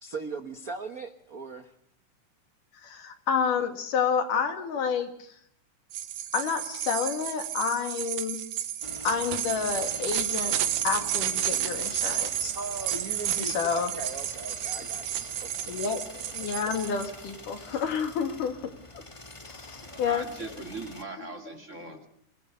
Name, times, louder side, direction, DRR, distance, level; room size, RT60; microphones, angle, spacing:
voice 1, 0.0-1.7 12.5-15.7, right 3 dB, 55° right, 8 dB, 0.9 m, -38 dB
voice 2, 2.7-5.4 6.3-8.4 9.0-10.6 10.8-12.5 13.4-13.9 15.7-19.0 19.5-20.5 21.2-21.3 21.9-22.0, left 6 dB, 80° left, 7 dB, 3.8 m, -30 dB
sound 1, 5.9-17.1, right 11 dB, 80° right, 2.7 m, -31 dB
sound 2, 8.8-21.0, left 2 dB, 15° left, 1.0 m, -45 dB
voice 3, 19.8-22.1, right 3 dB, 25° right, 5 dB, 2.3 m, -40 dB
26.5 x 20.0 x 6.8 m, 0.68 s
omnidirectional pair, 3.6 m